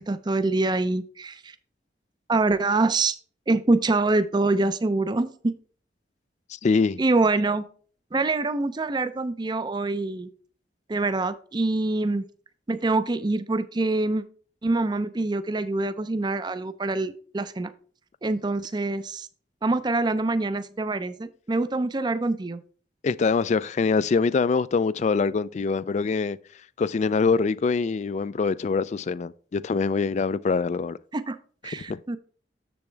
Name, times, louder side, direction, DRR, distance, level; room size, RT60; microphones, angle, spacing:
voice 1, 0.0-1.6 2.3-3.2 3.5-5.5 7.0-7.7 8.1-10.3 10.9-12.2 12.7-14.2 14.6-17.7 18.2-19.3 19.6-22.6 31.1-31.4 31.6-32.2, right 2 dB, 25° right, 0.4 m, -25 dB
voice 2, 6.5-7.0 23.0-26.4 26.8-31.0 31.8-32.0, left 4 dB, 40° left, 0.3 m, -24 dB
7.2 x 6.9 x 3.3 m
head